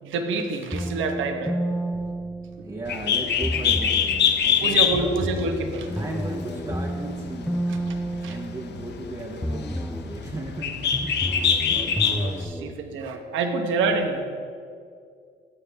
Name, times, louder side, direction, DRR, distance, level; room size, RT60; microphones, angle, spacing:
voice 1, 0.0-1.6 4.6-5.9 8.2-8.4 11.7-14.2, right 3 dB, 80° right, 5 dB, 1.0 m, -27 dB
sound 1, 0.7-3.0 3.4-4.3 4.9-9.0 9.4-10.2 10.9-12.7, right 1 dB, ahead, 0.3 m, -31 dB
voice 2, 2.6-5.1 5.9-7.9 8.3-11.3 11.7-11.8 12.9-13.0, right 2 dB, 20° right, -2 dB, 0.9 m, -36 dB
Bird, 2.9-12.4, left 7 dB, 60° left, 0.6 m, -25 dB
13.5 x 5.7 x 3.3 m, 2.2 s
cardioid pair, 90°, 20 cm